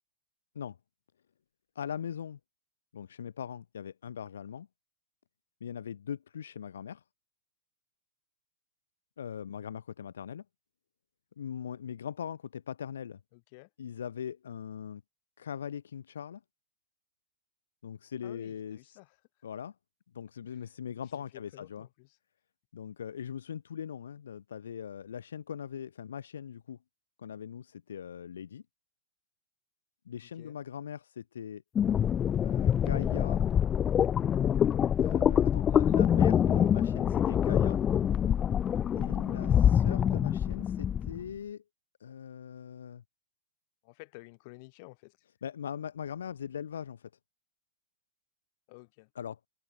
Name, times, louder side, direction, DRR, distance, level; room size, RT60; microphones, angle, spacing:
voice 1, 1.8-2.4 2.9-4.7 5.6-7.0 9.2-10.4 11.4-13.2 13.8-15.0 15.4-16.4 17.8-19.0 19.4-19.7 20.1-21.9 22.7-26.8 27.2-28.6 30.1-31.6 32.4-33.4 35.0-37.8 39.0-41.6 42.0-43.0 45.4-47.1 49.2-49.4, left 8 dB, 80° left, 2.0 m, -40 dB
voice 2, 13.3-13.7 18.2-19.2 20.5-20.7 21.1-22.2 30.2-30.6 39.3-39.6 43.8-45.2 48.7-49.1, left 28 dB, 50° left, 7.5 m, -52 dB
sound 1, 31.8-41.2, left 9 dB, 25° left, 0.3 m, -25 dB
open air
hypercardioid pair, 115°, 0 cm